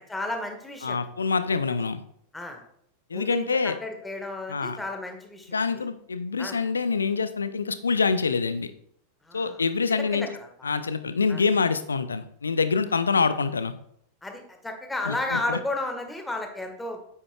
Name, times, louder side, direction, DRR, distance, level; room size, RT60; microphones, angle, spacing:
voice 1, 0.1-1.0 2.3-2.6 3.1-5.8 6.4-6.6 9.2-9.6 9.9-10.7 11.3-11.4 14.2-17.0, left 2 dB, 10° left, 4 dB, 1.6 m, -33 dB
voice 2, 0.8-2.0 3.1-3.8 4.5-4.8 5.5-8.7 9.3-10.3 10.6-13.7 15.0-15.6, left 5 dB, 75° left, 13 dB, 0.5 m, -26 dB
9.2 x 8.6 x 2.4 m, 0.68 s
figure-of-eight pair, 90°, 0 cm